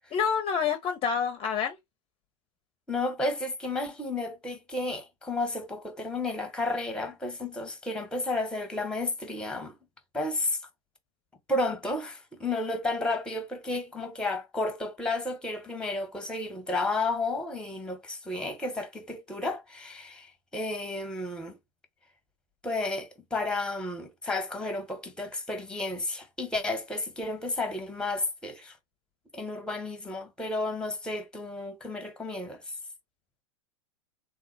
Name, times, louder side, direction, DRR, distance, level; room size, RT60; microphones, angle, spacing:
voice 1, 0.1-1.8, left 7 dB, 30° left, 0.6 m, -27 dB
voice 2, 2.9-9.8 10.1-10.6 11.5-21.6 22.6-28.8 29.3-32.6, left 2 dB, 5° left, 1.0 m, -32 dB
3.5 x 2.0 x 3.2 m
hypercardioid pair, 95°, 18 cm